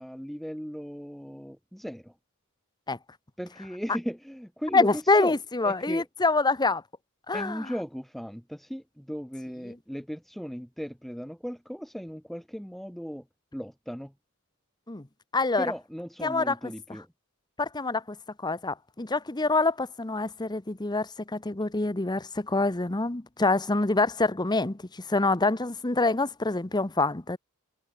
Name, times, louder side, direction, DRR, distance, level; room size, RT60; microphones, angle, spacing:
voice 1, 0.0-2.1 3.4-5.4 5.6-6.1 7.3-13.3 13.5-14.1 15.6-17.1, equal, ahead, 2.0 m, -37 dB
voice 2, 4.7-6.8 7.3-7.7 14.9-15.1 15.3-15.7 16.2-16.5 17.6-18.2 18.4-27.4, left 3 dB, 20° left, 1.0 m, -26 dB
head